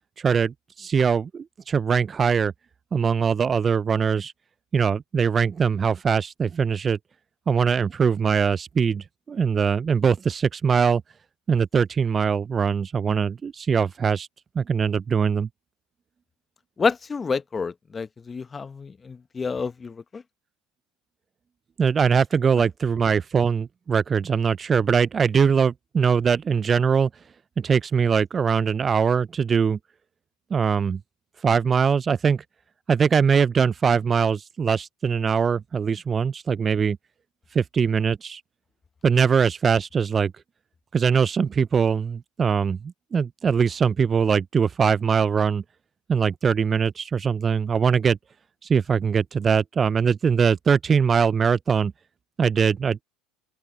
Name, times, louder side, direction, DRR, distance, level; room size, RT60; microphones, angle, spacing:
voice 1, 0.2-2.5 2.9-4.3 4.7-7.0 7.5-11.0 11.5-14.3 14.6-15.5 21.8-27.1 27.6-29.8 30.5-31.0 31.4-32.4 32.9-37.0 37.5-38.4 39.0-40.3 40.9-45.6 46.1-48.2 48.7-51.9 52.4-53.0, right 6 dB, 30° right, 0.5 m, -22 dB
voice 2, 16.8-20.2 22.6-22.7, left 5 dB, 25° left, 1.0 m, -29 dB
open air
hypercardioid pair, 75°, 0 cm